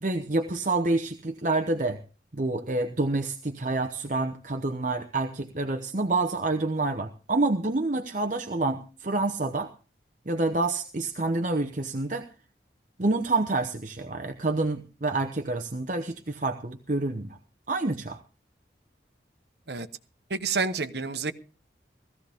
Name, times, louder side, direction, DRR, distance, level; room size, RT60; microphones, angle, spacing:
voice 1, 0.0-2.0 2.3-9.7 10.3-12.3 13.0-17.4 17.7-18.2, right 2 dB, 45° right, 5 dB, 0.9 m, -28 dB
voice 2, 20.3-21.3, right 4 dB, 70° right, 9 dB, 1.1 m, -29 dB
17.5 x 14.5 x 3.5 m, 0.35 s
head